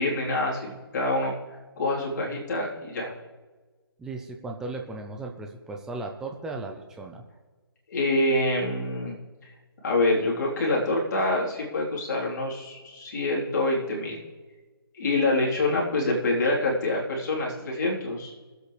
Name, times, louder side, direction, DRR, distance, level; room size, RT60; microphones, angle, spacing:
voice 1, 0.0-1.3 1.8-3.1 7.9-9.2 9.4-9.5 9.8-14.2 15.0-18.3, left 2 dB, 45° left, -3 dB, 3.7 m, -26 dB
voice 2, 4.0-7.2, right 3 dB, 5° right, 2 dB, 0.6 m, -36 dB
24.0 x 8.2 x 3.3 m, 1.3 s
figure-of-eight pair, 150°, 13 cm